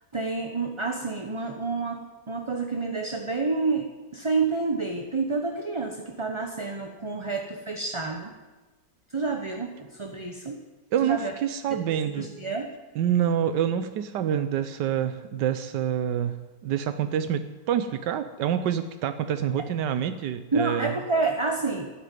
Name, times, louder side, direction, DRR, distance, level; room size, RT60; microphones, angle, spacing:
voice 1, 0.1-8.3 9.1-10.6 11.0-11.3 11.7-11.8 12.2-12.7 20.5-21.9, right 3 dB, 20° right, 3 dB, 0.9 m, -29 dB
voice 2, 10.9-12.3 12.9-16.4 16.6-20.9, right 9 dB, 90° right, 11 dB, 1.4 m, -27 dB
13.0 x 11.5 x 9.3 m, 1.2 s
omnidirectional pair, 1.8 m